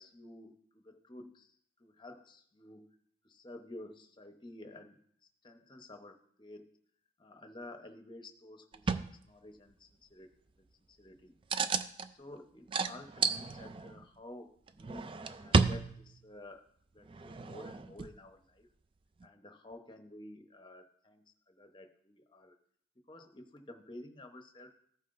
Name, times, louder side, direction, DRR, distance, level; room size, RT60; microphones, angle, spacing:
voice 1, 0.0-1.5 1.8-2.9 3.2-5.0 5.4-6.7 7.2-10.3 11.0-11.3 12.0-16.7 16.9-18.7 19.2-22.5 23.1-24.7, left 1 dB, 25° left, 5 dB, 0.8 m, -51 dB
sound 1, 8.7-9.1 11.5-12.1 12.7-14.0 14.7-16.3 17.1-18.1 19.2-19.3, right 4 dB, 25° right, 0.3 m, -32 dB
15.0 x 5.6 x 2.6 m, 0.64 s
head